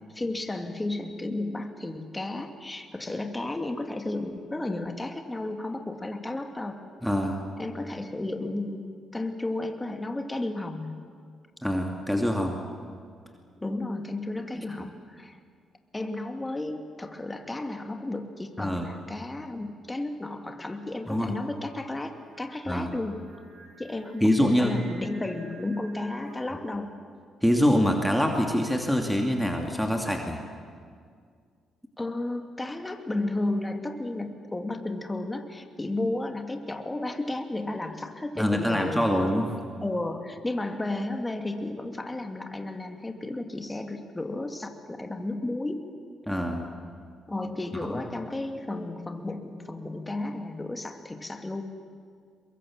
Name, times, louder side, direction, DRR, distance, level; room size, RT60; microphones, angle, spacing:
voice 1, 0.1-6.8 7.6-11.0 13.6-15.4 15.9-23.2 23.8-26.9 32.0-39.1 39.8-45.9 47.3-51.6, left 2 dB, 20° left, 6 dB, 2.4 m, -33 dB
voice 2, 7.0-7.4 11.6-12.6 14.5-14.7 18.6-18.9 21.1-21.3 22.7-22.9 24.2-24.7 27.4-30.4 38.4-39.6 46.3-46.7 47.7-48.0, equal, ahead, 2 dB, 2.8 m, -25 dB
Singing, 21.7-26.7, right 2 dB, 60° right, 6.4 m, -52 dB
23.0 x 22.0 x 7.5 m, 2.1 s
supercardioid pair, 60°, 0 cm